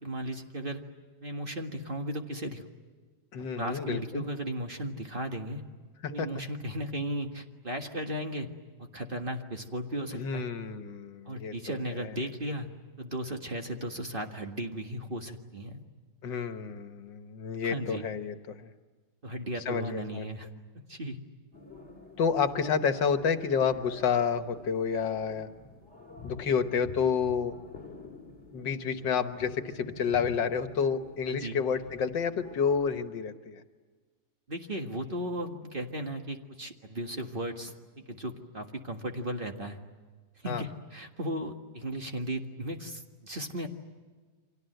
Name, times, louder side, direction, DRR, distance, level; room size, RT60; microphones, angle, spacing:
voice 1, 0.0-0.8 1.2-2.6 3.6-5.6 6.1-8.5 8.8-10.5 11.3-12.7 13.0-15.8 17.6-18.1 19.2-20.5 20.9-21.2 31.3-31.6 34.5-37.7 38.1-39.8 40.4-43.7, right 1 dB, 30° right, 3 dB, 1.8 m, -36 dB
voice 2, 3.3-4.2 6.0-6.3 10.1-12.1 16.2-18.7 19.7-20.3 22.2-25.5 26.2-27.6 28.5-33.6 40.4-40.6, left 6 dB, 80° left, 8 dB, 2.0 m, -30 dB
sound 1, 21.5-33.0, left 3 dB, 40° left, 3.2 m, -49 dB
29.5 x 25.0 x 7.9 m, 1.4 s
omnidirectional pair, 1.9 m